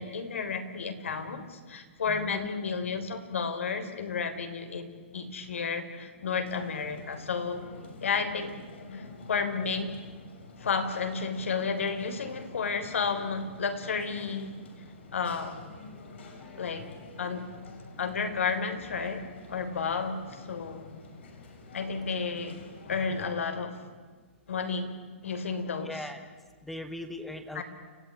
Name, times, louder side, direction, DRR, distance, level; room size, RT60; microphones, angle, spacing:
voice 1, 0.0-7.6 8.0-8.5 8.9-10.0 10.6-14.6 15.1-15.6 16.6-16.9 17.2-17.5 18.0-20.9 21.7-22.6 22.9-23.8 24.5-25.0 25.2-26.0 27.5-27.6, left 5 dB, 90° left, 8 dB, 3.6 m, -32 dB
voice 2, 2.1-2.5 16.4-17.0 25.8-26.2 26.6-27.6, left 1 dB, ahead, 8 dB, 1.1 m, -40 dB
sound 1, 6.4-23.3, left 3 dB, 60° left, 6.5 m, -48 dB
29.5 x 15.0 x 9.9 m, 1.5 s
hypercardioid pair, 170°, 7 cm